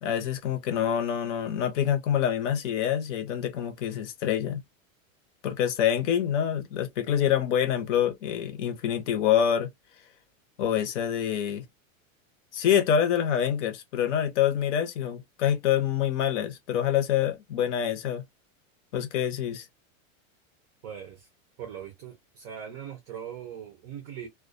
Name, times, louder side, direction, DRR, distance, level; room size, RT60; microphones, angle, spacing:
voice 1, 0.0-4.6 5.4-9.7 10.6-11.6 12.5-18.2 18.9-19.7, left 9 dB, 60° left, 0.8 m, -26 dB
voice 2, 20.8-21.3 21.6-24.3, right 9 dB, 25° right, 0.5 m, -40 dB
2.3 x 2.3 x 2.5 m
supercardioid pair, 170°, 41 cm